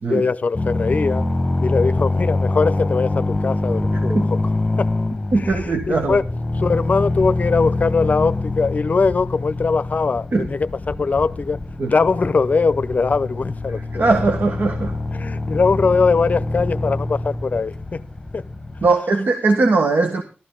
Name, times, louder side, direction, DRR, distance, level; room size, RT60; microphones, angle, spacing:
voice 1, 0.1-1.3 1.6-4.4 4.8-4.9 5.3-6.2 6.6-11.6 11.8-14.1 15.1-18.0 18.3-18.4, left 4 dB, 45° left, 0.7 m, -21 dB
sound 1, 0.5-18.9, left 2 dB, 15° left, 1.4 m, -25 dB
voice 2, 5.3-6.2 10.3-10.5 11.8-11.9 13.9-14.9 18.8-20.2, right 3 dB, 60° right, 1.5 m, -19 dB
14.0 x 12.5 x 3.9 m
wide cardioid pair, 155°, 4 cm